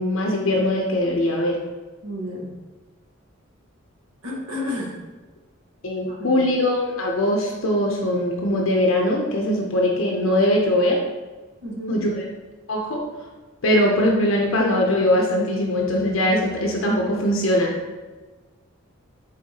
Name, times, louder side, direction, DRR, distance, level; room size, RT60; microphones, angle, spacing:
voice 1, 0.0-1.6 5.8-11.0 11.9-12.3 12.7-13.0 13.6-17.7, left 1 dB, 70° left, -1 dB, 0.6 m, -21 dB
voice 2, 2.0-2.5 4.2-5.0 6.1-6.4 11.6-12.0, left 1 dB, 75° right, -3 dB, 1.2 m, -31 dB
4.6 x 4.1 x 2.8 m, 1.3 s
head